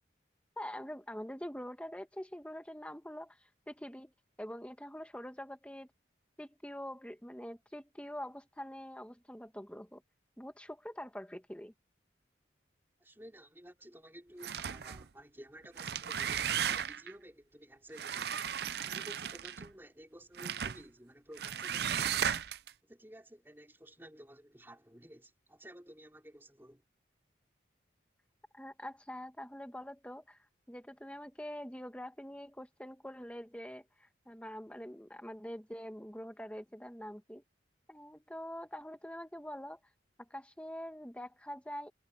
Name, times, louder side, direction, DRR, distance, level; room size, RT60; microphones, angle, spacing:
voice 1, 0.6-4.1 4.4-5.9 6.4-10.0 10.4-11.7 28.5-30.4 30.7-37.4 37.9-39.8 40.2-41.9, equal, 5° left, 1.3 m, -45 dB
voice 2, 13.0-18.4 18.8-22.4 22.8-26.8, equal, 10° right, 3.3 m, -54 dB
sound 1, 14.4-15.0 15.6-17.1 17.9-19.7 20.4-20.8 21.4-22.7, right 8 dB, 55° right, 0.5 m, -35 dB
head